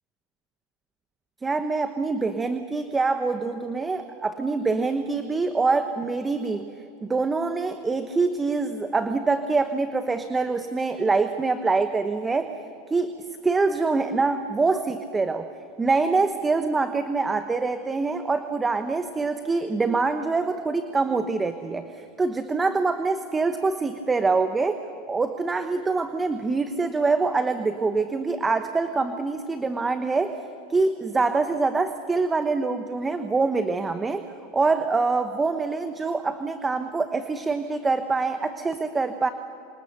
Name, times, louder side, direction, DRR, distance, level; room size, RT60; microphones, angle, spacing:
voice 1, 1.4-6.7 7.0-12.6 12.9-13.2 13.4-15.5 15.8-24.8 25.1-30.4 30.7-34.2 34.5-39.3, right 3 dB, 15° right, 9 dB, 1.0 m, -25 dB
27.0 x 25.5 x 6.7 m, 2.7 s
hypercardioid pair, 105°, 0 cm